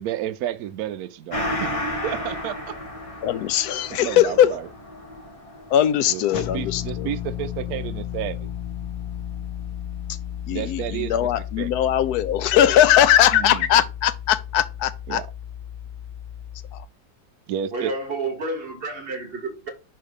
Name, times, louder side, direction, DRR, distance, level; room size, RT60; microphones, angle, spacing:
voice 1, 0.0-1.7 2.0-2.8 3.9-4.7 6.1-8.5 10.5-11.3 11.6-11.7 13.3-13.7 15.1-15.3 17.5-17.9, right 11 dB, 75° right, 0.8 m, -31 dB
Gong, 1.3-10.3 10.6-10.7, left 1 dB, 25° left, 1.0 m, -35 dB
voice 2, 3.2-4.5 5.7-7.1 10.5-15.2 16.7-16.8, left 11 dB, 70° left, 1.0 m, -20 dB
sound 1, 6.3-16.8, left 11 dB, 10° right, 0.7 m, -34 dB
voice 3, 17.7-19.7, right 2 dB, 40° right, 0.9 m, -30 dB
5.6 x 3.3 x 5.1 m
omnidirectional pair, 2.0 m